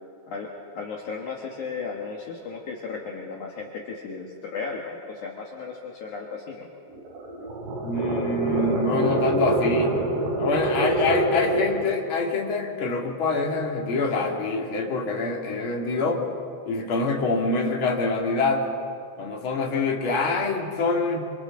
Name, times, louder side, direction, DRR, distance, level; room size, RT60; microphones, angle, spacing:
voice 1, 0.3-6.7, left 4 dB, 75° left, -2 dB, 1.8 m, -35 dB
sound 1, 6.9-11.9, right 1 dB, 65° right, 5.8 m, -25 dB
voice 2, 7.8-9.9 10.4-16.3 16.7-18.6 19.2-21.3, left 3 dB, 40° left, -1 dB, 1.9 m, -25 dB
27.0 x 27.0 x 3.8 m, 2.4 s
omnidirectional pair, 5.9 m